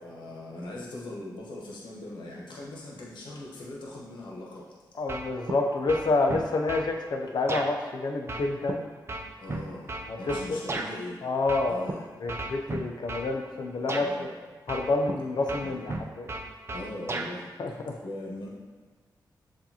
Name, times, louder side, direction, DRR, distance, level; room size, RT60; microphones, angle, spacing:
voice 1, 0.0-4.6 9.4-11.2 11.7-12.1 13.9-14.3 15.6-15.8 16.7-17.5 18.0-18.5, left 1 dB, 85° left, -4 dB, 1.0 m, -40 dB
voice 2, 5.0-8.9 10.1-10.6 11.2-11.9 12.2-14.3 14.7-16.3 17.6-17.9, left 3 dB, 65° left, 2 dB, 0.6 m, -28 dB
sound 1, 5.1-5.6 5.9-6.9 7.5-7.7 8.3-10.9 11.5-11.9 12.3-13.3 13.9-14.1 14.7-15.2 15.5-17.3, right 2 dB, 35° right, 0.5 m, -34 dB
6.9 x 2.6 x 2.8 m, 1.5 s
cardioid pair, 65°, 8 cm